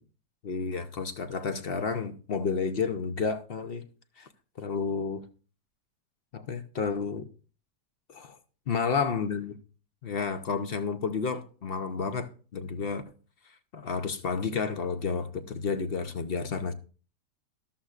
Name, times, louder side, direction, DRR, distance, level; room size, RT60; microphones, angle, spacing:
voice 1, 0.4-3.8 4.2-4.3 4.6-5.2 6.3-7.3 8.1-8.4 8.7-9.6 10.0-13.0 13.7-16.7, left 5 dB, 55° left, 0.6 m, -31 dB
13.0 x 13.0 x 2.5 m
omnidirectional pair, 1.8 m